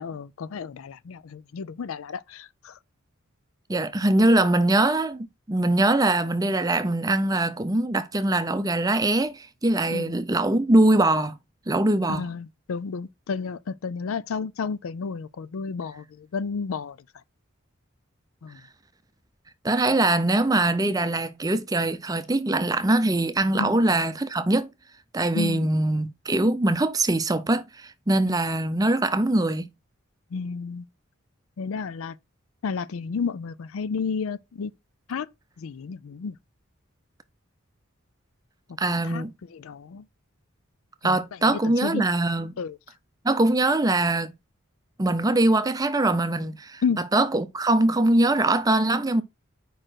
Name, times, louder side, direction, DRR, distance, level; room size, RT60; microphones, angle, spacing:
voice 1, 0.0-2.8 9.9-10.1 12.1-17.0 18.4-18.6 23.5-23.8 25.3-25.7 28.3-28.4 30.3-30.9 31.6-32.2 32.6-34.7 35.1-35.3 35.6-36.4 38.9-39.2 39.5-40.1 41.0-42.1 42.6-42.8 46.8-47.0, left 5 dB, 85° left, 0.4 m, -32 dB
voice 2, 3.7-11.3 11.7-12.2 19.6-24.7 25.1-29.7 38.8-39.3 41.0-42.5 43.2-44.3 45.0-46.8 47.1-49.2, right 2 dB, 15° right, 0.5 m, -22 dB
5.0 x 4.4 x 6.1 m
head